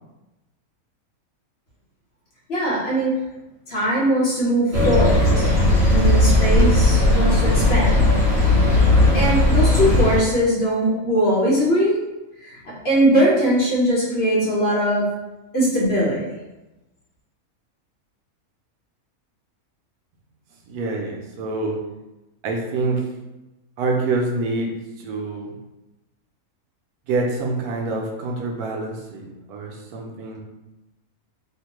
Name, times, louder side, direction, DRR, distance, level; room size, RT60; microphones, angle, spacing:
voice 1, 2.5-3.1 3.7-5.5 5.9-8.0 9.1-11.9 12.4-12.6 12.8-15.1 15.5-16.3, equal, 50° left, -8 dB, 1.0 m, -20 dB
sound 1, 4.7-10.2, left 1 dB, 55° right, 0.9 m, -16 dB
voice 2, 20.7-21.8 22.4-23.1 23.8-25.6 27.1-30.4, right 3 dB, 85° right, 0 dB, 1.1 m, -26 dB
2.9 x 2.1 x 2.9 m, 1.0 s
omnidirectional pair, 1.6 m